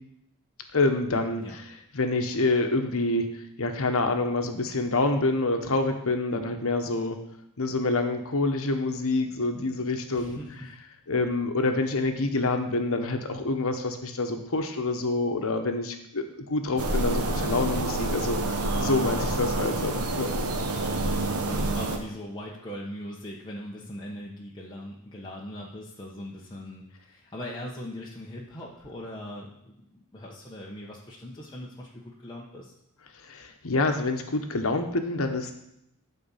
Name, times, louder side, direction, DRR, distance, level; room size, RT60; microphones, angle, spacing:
voice 1, 0.7-1.6 1.9-7.2 7.6-10.4 11.1-20.4 33.2-35.5, left 2 dB, 65° left, 6 dB, 1.2 m, -27 dB
voice 2, 10.1-10.7 21.2-32.7, left 1 dB, 20° left, -4 dB, 1.2 m, -40 dB
sound 1, 16.8-22.0, right 2 dB, 75° right, 1.4 m, -28 dB
13.0 x 4.3 x 7.3 m, 0.80 s
head